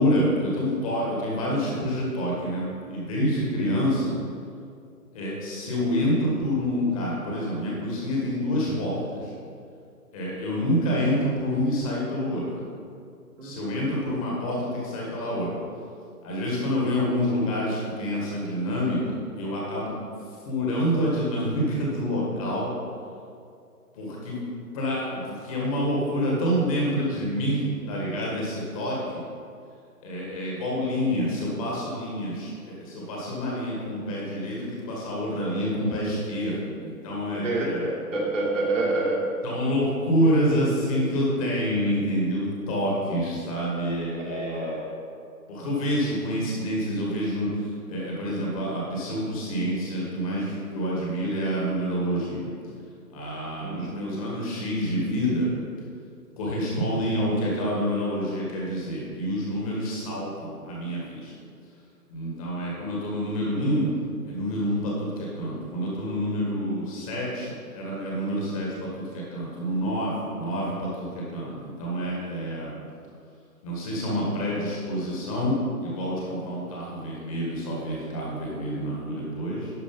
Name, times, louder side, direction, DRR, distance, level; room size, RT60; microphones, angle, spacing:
voice 1, 0.0-4.2 5.1-9.3 10.1-12.6 13.4-15.6 16.2-19.9 20.4-22.7 23.9-29.2 30.0-37.9 39.4-44.9 45.5-52.5 53.1-55.5 56.4-61.3 62.1-63.9 64.2-72.7 73.6-79.7, equal, 20° left, -4 dB, 1.6 m, -27 dB
voice 2, 37.3-39.2 44.2-44.9 53.6-54.3, right 2 dB, 50° right, -2 dB, 2.2 m, -28 dB
11.0 x 4.7 x 5.3 m, 2.4 s
figure-of-eight pair, 150°, 47 cm